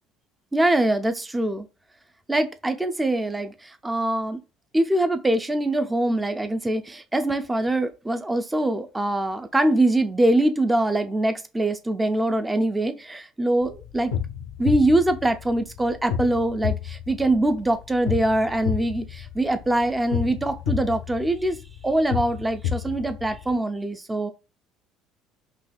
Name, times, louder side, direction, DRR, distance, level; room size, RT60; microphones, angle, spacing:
voice 1, 0.5-1.7 2.3-4.4 4.7-14.1 14.6-24.3, right 1 dB, 15° right, 0.4 m, -23 dB
sound 1, 13.6-23.6, left 9 dB, 85° left, 0.4 m, -31 dB
4.0 x 2.8 x 2.3 m
hypercardioid pair, 70°, 0 cm